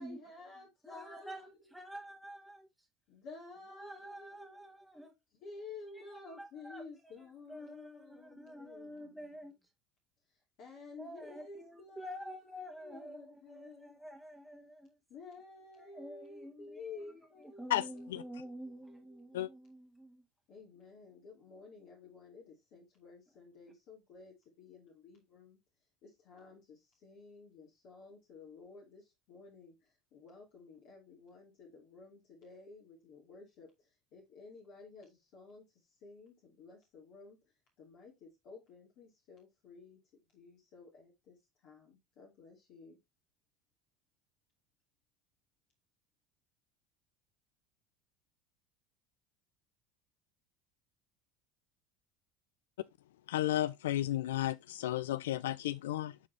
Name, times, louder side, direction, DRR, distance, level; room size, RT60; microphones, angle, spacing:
voice 1, 0.0-1.8 3.1-4.8 5.4-9.2 10.6-14.1 15.1-19.6 20.5-25.6 26.0-29.7 30.1-33.7 34.1-35.7 36.0-37.4 37.8-40.0 40.3-41.4 41.6-43.0, left 4 dB, 60° left, 2.5 m, -53 dB
voice 2, 0.8-2.7 3.7-5.1 5.9-9.5 11.0-15.0 15.8-20.2, equal, ahead, 1.7 m, -49 dB
voice 3, 53.3-56.1, left 13 dB, 80° left, 0.3 m, -33 dB
7.3 x 4.1 x 3.3 m
hypercardioid pair, 75°, 0 cm